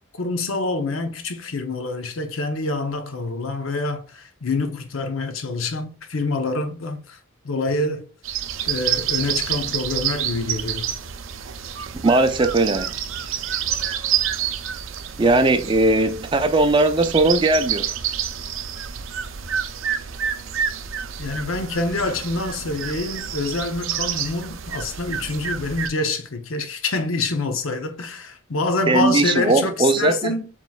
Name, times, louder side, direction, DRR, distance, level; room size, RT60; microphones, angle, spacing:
voice 1, 0.2-7.2 7.4-8.1 8.7-10.9 21.2-30.5, left 3 dB, 90° left, 0.7 m, -26 dB
sound 1, 8.2-25.9, right 9 dB, 80° right, 0.5 m, -28 dB
voice 2, 12.0-12.9 15.2-17.9 28.9-30.3, right 2 dB, 25° right, 0.4 m, -18 dB
7.2 x 3.1 x 2.3 m
head